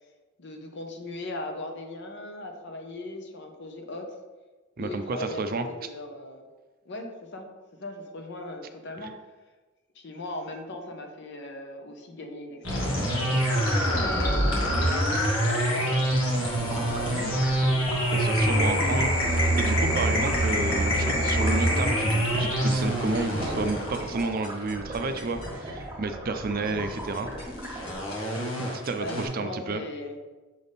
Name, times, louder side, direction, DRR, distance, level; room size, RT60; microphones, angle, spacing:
voice 1, 0.4-4.2 4.8-6.5 6.8-7.5 7.8-9.1 9.9-17.4 29.0-30.2, left 1 dB, 60° left, 3 dB, 0.9 m, -38 dB
voice 2, 4.8-5.7 18.1-27.3 28.7-29.8, right 3 dB, 45° right, 8 dB, 0.4 m, -31 dB
sound 1, 12.6-25.7 26.6-29.3, equal, 90° left, 1.7 m, -25 dB
sound 2, 16.4-27.9, right 1 dB, 20° right, 1.5 m, -38 dB
6.7 x 3.5 x 4.1 m, 1.2 s
head